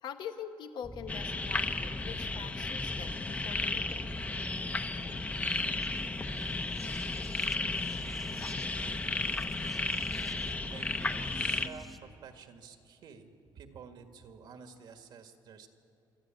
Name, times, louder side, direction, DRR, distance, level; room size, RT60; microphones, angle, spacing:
voice 1, 0.0-4.2, left 8 dB, 65° left, 8 dB, 1.0 m, -44 dB
sound 1, 0.8-12.0, equal, ahead, 1.2 m, -45 dB
sound 2, 1.1-11.7, left 3 dB, 20° left, 0.8 m, -34 dB
voice 2, 10.7-15.7, right 6 dB, 65° right, 6 dB, 1.8 m, -51 dB
26.0 x 12.5 x 9.0 m, 2.7 s
cardioid pair, 125°, 8 cm